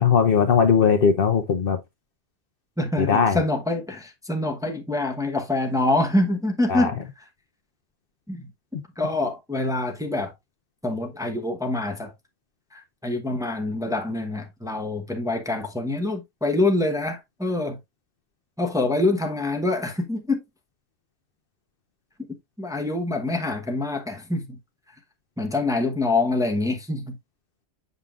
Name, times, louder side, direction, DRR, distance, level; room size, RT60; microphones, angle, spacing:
voice 1, 0.0-1.8 3.0-3.4 6.7-6.9, left 6 dB, 55° left, 0.8 m, -19 dB
voice 2, 2.8-6.9 8.3-8.5 9.0-10.3 10.8-12.1 12.7-17.8 18.6-20.4 22.6-24.6 25.4-27.2, left 2 dB, 5° right, 0.8 m, -25 dB
7.3 x 5.4 x 2.4 m
omnidirectional pair, 1.2 m